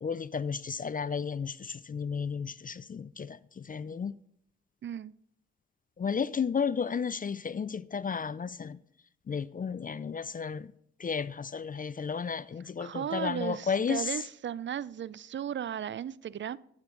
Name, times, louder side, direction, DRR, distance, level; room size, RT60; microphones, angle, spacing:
voice 1, 0.0-4.1 6.0-8.8 9.3-10.7 11.0-14.1, left 6 dB, 30° left, 0.4 m, -33 dB
voice 2, 4.8-5.1 12.8-16.6, right 9 dB, 40° right, 0.4 m, -35 dB
9.7 x 7.4 x 3.8 m
supercardioid pair, 40°, 30 cm